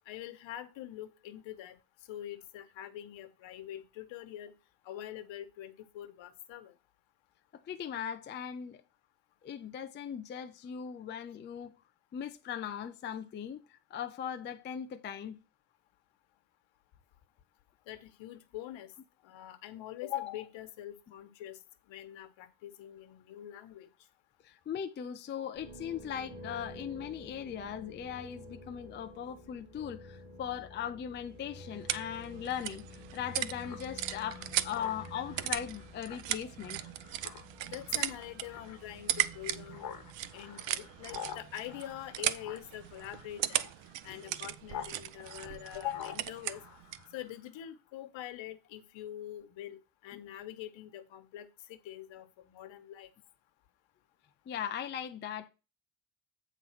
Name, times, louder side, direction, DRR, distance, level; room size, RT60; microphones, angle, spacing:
voice 1, 0.1-1.8 2.1-4.5 4.8-6.7 17.9-18.9 19.2-21.6 21.9-23.9 37.6-40.0 40.3-43.7 44.0-46.6 47.1-53.1, left 12 dB, 70° left, 1.2 m, -44 dB
voice 2, 7.5-8.8 9.4-11.7 12.1-15.4 24.4-36.9 44.3-44.4 54.5-55.5, left 9 dB, 25° left, 0.4 m, -39 dB
sound 1, 25.5-42.1, left 2 dB, 10° right, 4.0 m, -51 dB
sound 2, 31.3-47.1, right 13 dB, 65° right, 0.7 m, -38 dB
Speech synthesizer, 33.6-44.9 45.2-47.5, left 8 dB, 45° left, 1.3 m, -49 dB
8.4 x 4.0 x 5.7 m
cardioid pair, 170°, 47 cm